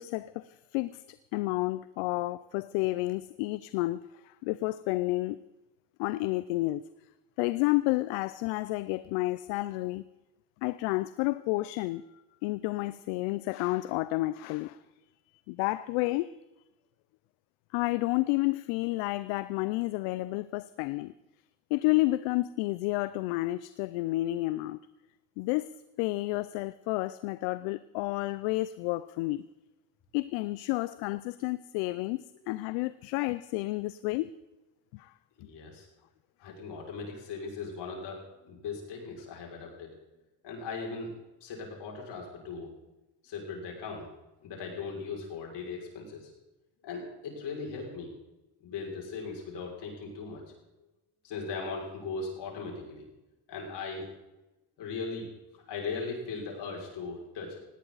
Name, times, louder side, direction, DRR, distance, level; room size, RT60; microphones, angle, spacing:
voice 1, 0.0-5.4 6.0-6.8 7.4-10.0 10.6-12.0 12.4-14.8 15.5-16.3 17.7-21.1 21.7-24.8 25.4-29.5 30.1-34.3 34.9-35.1 36.4-36.5, left 19 dB, 80° left, 0.6 m, -30 dB
voice 2, 35.4-35.9 36.4-39.9 40.4-41.1 41.4-42.7 43.2-44.1 44.4-46.3 46.8-48.1 48.6-50.6 51.2-53.1 53.5-54.1 54.8-55.3 55.7-57.6, left 4 dB, 60° left, 5.9 m, -38 dB
18.5 x 17.0 x 4.0 m
supercardioid pair, 85°, 45 cm